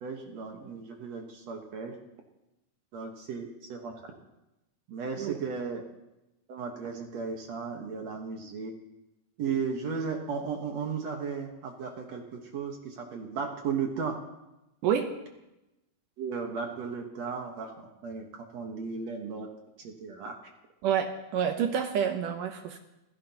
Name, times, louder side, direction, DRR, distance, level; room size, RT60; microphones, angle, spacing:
voice 1, 0.0-2.0 2.9-3.9 4.9-5.8 6.5-8.7 9.4-14.2 16.2-18.3 18.5-19.5 19.8-20.4, right 5 dB, 60° right, 2 dB, 2.1 m, -35 dB
voice 2, 14.8-15.1 20.8-22.8, right 8 dB, 75° right, 6 dB, 2.2 m, -28 dB
27.5 x 16.0 x 2.9 m, 0.95 s
omnidirectional pair, 4.3 m